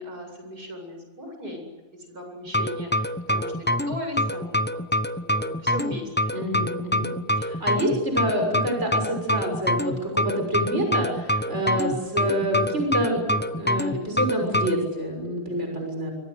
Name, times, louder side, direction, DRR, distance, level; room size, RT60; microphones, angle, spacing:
voice 1, 0.0-1.6 2.1-4.8 5.1-6.3 11.9-12.3, left 1 dB, 80° right, 4 dB, 8.5 m, -37 dB
sound 1, 2.5-14.8, left 1 dB, 10° left, 0.7 m, -25 dB
voice 2, 6.3-16.1, equal, 45° right, 2 dB, 6.8 m, -27 dB
28.0 x 24.5 x 8.3 m, 1.3 s
omnidirectional pair, 1.6 m